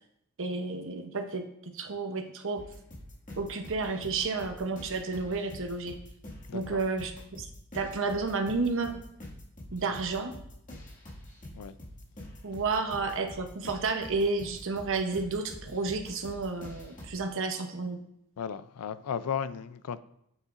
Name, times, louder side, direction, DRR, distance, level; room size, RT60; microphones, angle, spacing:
voice 1, 0.4-2.6 3.4-6.0 6.5-7.5 7.7-9.0 9.7-10.3 12.4-18.0, right 3 dB, 60° right, 0.8 m, -31 dB
sound 1, 2.6-17.1, left 1 dB, 35° left, 2.0 m, -46 dB
voice 2, 6.5-6.8 11.5-11.7 18.4-20.0, left 7 dB, 90° left, 0.4 m, -35 dB
8.3 x 6.6 x 2.5 m
head